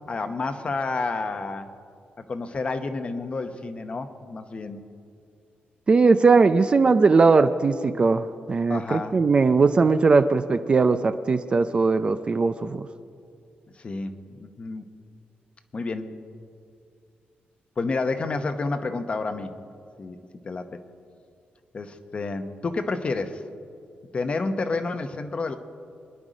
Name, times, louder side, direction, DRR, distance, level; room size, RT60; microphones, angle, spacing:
voice 1, 0.1-1.7 2.3-4.8 8.7-9.2 13.7-14.8 15.7-16.1 17.8-19.6 20.0-20.2 20.4-20.8 21.7-23.4 24.1-25.6, left 3 dB, 35° left, 8 dB, 0.9 m, -30 dB
voice 2, 5.9-12.9, right 4 dB, 30° right, 11 dB, 0.5 m, -19 dB
25.5 x 10.5 x 5.1 m, 2.4 s
wide cardioid pair, 165°, 4 cm